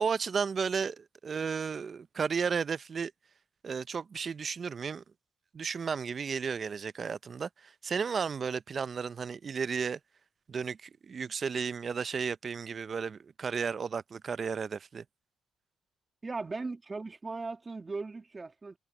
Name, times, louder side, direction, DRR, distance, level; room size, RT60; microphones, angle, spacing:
voice 1, 0.0-3.1 3.6-5.0 5.5-10.0 10.5-15.0, right 6 dB, 45° right, 0.5 m, -33 dB
voice 2, 16.2-18.8, right 3 dB, 25° right, 2.3 m, -38 dB
cardioid pair, 90°, 0 cm